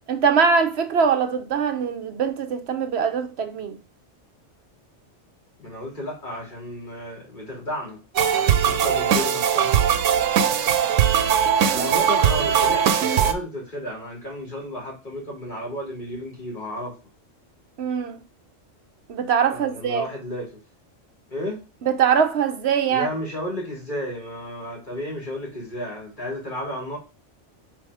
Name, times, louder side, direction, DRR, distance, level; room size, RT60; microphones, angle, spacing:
voice 1, 0.1-3.8 11.7-11.9 17.8-18.2 19.1-20.1 21.8-23.1, right 6 dB, 60° right, 1.1 m, -22 dB
voice 2, 5.6-8.0 8.4-9.7 11.7-17.0 19.5-20.6 21.3-21.6 22.9-27.0, equal, 40° left, 2.9 m, -33 dB
sound 1, 8.1-13.3, right 8 dB, 85° right, 1.0 m, -20 dB
4.7 x 4.2 x 4.8 m
omnidirectional pair, 1.3 m